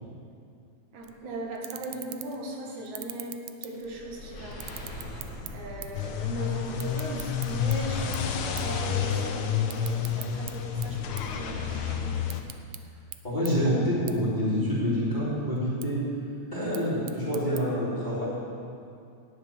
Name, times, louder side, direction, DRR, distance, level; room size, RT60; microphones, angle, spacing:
voice 1, 0.9-5.2 5.5-12.2, right 1 dB, 75° right, -1 dB, 3.2 m, -38 dB
sound 1, 1.0-1.3 3.8-8.4 10.8-12.0, left 1 dB, 45° left, 2.3 m, -42 dB
sound 2, 1.0-1.2 1.5-2.5 2.8-4.1 4.5-6.1 6.3-7.8 8.1-8.3 8.6-8.8 9.1-10.5 10.8-11.8 12.1-12.8 13.1-13.2 13.4-13.5 14.1-14.2 14.5-15.1 15.6-15.9 16.5-17.6, right 14 dB, 90° right, 1.3 m, -41 dB
sound 3, 5.9-12.4, left 7 dB, 80° left, 1.2 m, -30 dB
voice 2, 13.2-16.0 16.5-18.3, equal, 15° left, -8 dB, 3.1 m, -27 dB
11.0 x 8.8 x 8.7 m, 2.4 s
omnidirectional pair, 3.5 m